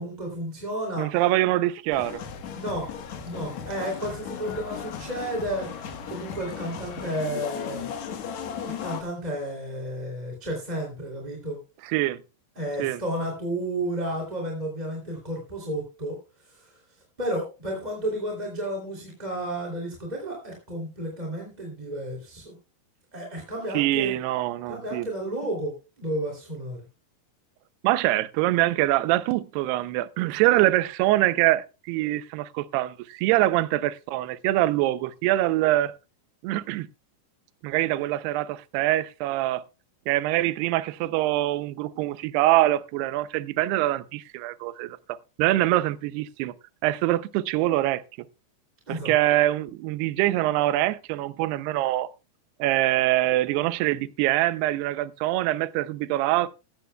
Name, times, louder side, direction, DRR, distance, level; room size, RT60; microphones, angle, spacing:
voice 1, 0.0-1.1 2.5-2.9 3.2-7.9 8.6-11.6 12.6-16.2 16.5-16.7 17.2-22.5 23.1-24.2 24.6-26.8 48.9-49.1, right 1 dB, 10° right, 2.2 m, -32 dB
voice 2, 1.0-2.2 11.8-12.2 12.8-13.0 23.7-25.1 27.8-35.9 36.4-36.9 37.6-39.6 40.1-45.0 45.4-46.5 46.8-48.0 48.9-52.1 52.6-56.5, right 16 dB, 80° right, 2.7 m, -24 dB
sound 1, 1.9-9.0, left 7 dB, 60° left, 2.0 m, -36 dB
15.5 x 14.0 x 2.3 m
omnidirectional pair, 4.8 m